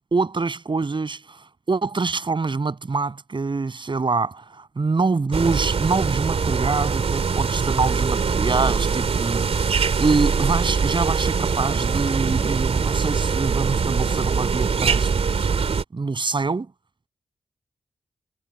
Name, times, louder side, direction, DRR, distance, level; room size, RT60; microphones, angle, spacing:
voice 1, 0.1-9.7 10.0-15.1 15.4-15.5 15.9-16.7, right 4 dB, 45° right, 6.8 m, -25 dB
sound 1, 5.3-15.8, right 5 dB, 65° right, 3.2 m, -22 dB
cardioid pair, 55°, 11 cm